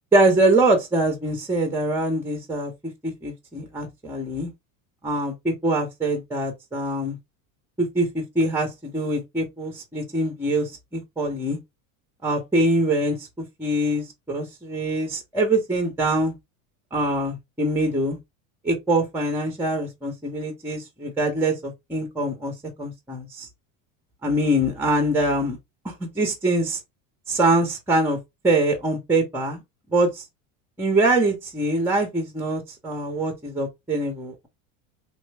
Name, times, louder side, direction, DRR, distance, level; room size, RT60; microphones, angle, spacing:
voice 1, 0.1-2.7 3.0-4.5 5.0-7.2 7.8-11.6 12.2-16.3 16.9-18.2 18.6-22.5 22.8-23.5 24.2-25.6 25.8-26.8 27.3-28.2 28.4-29.6 29.9-30.2 30.8-34.5, right 1 dB, 5° right, 0.7 m, -24 dB
3.1 x 2.2 x 3.2 m
supercardioid pair, 115°, 42 cm